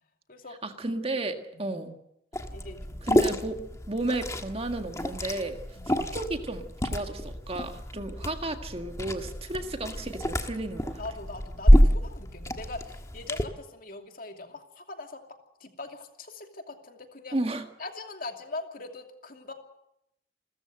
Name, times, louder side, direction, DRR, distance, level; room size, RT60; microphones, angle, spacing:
voice 1, 0.6-1.9 3.1-3.6 3.9-5.6 5.9-11.0 17.3-17.6, right 2 dB, 35° right, 6 dB, 1.8 m, -33 dB
voice 2, 1.5-1.9 2.5-3.0 5.8-6.1 11.0-15.2 15.6-17.4 17.8-19.5, left 2 dB, 50° left, 5 dB, 2.7 m, -41 dB
Liquid, 2.3-13.4, equal, 15° left, 1.5 m, -27 dB
29.0 x 14.0 x 7.8 m, 0.82 s
head